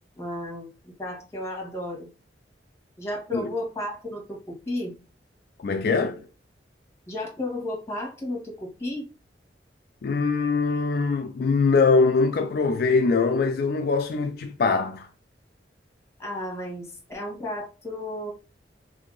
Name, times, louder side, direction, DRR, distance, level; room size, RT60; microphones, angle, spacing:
voice 1, 0.2-2.1 3.0-4.9 7.1-9.1 16.2-18.3, left 1 dB, 15° left, 1.2 m, -33 dB
voice 2, 5.6-6.2 10.0-15.1, left 4 dB, 55° left, 0.3 m, -22 dB
2.7 x 2.7 x 3.7 m
head